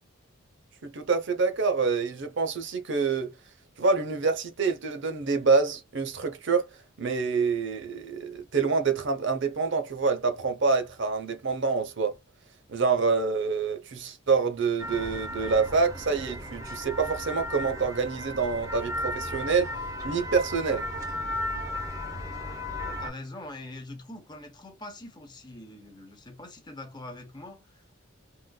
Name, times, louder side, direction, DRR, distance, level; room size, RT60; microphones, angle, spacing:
voice 1, 0.8-3.3 3.8-6.7 7.0-12.1 12.7-19.7 20.0-20.9, right 4 dB, 60° right, 0.7 m, -26 dB
sound 1, 14.8-23.1, left 1 dB, 15° right, 0.8 m, -35 dB
voice 2, 22.8-27.9, left 1 dB, 20° left, 0.9 m, -43 dB
3.8 x 2.6 x 2.3 m
head